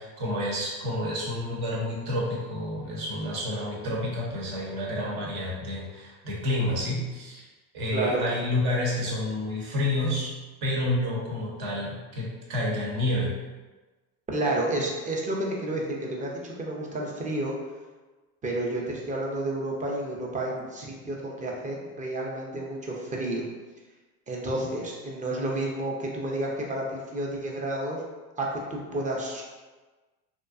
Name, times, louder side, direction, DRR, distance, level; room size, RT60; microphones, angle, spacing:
voice 1, 0.0-7.5 7.7-10.3 10.6-13.3, left 1 dB, 60° right, -4 dB, 1.0 m, -29 dB
voice 2, 14.3-17.5 18.4-23.5 24.3-28.0 28.4-29.4, right 1 dB, 20° right, -2 dB, 0.5 m, -30 dB
2.6 x 2.2 x 2.4 m, 1.3 s
hypercardioid pair, 85°, 43 cm